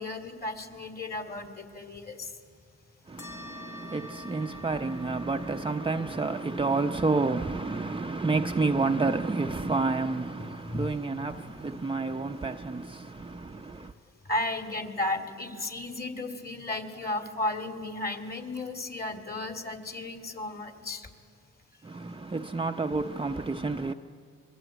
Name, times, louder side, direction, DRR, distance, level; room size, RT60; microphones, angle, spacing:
voice 1, 0.0-2.3 8.4-8.6 9.6-9.7 10.4-11.8 14.3-21.1, left 2 dB, 30° left, 3.0 m, -34 dB
voice 2, 3.1-13.9 21.8-23.9, right 3 dB, 15° right, 0.7 m, -30 dB
sound 1, 3.2-12.1, left 2 dB, 70° left, 3.8 m, -50 dB
26.0 x 22.0 x 9.2 m
cardioid pair, 90°, 30 cm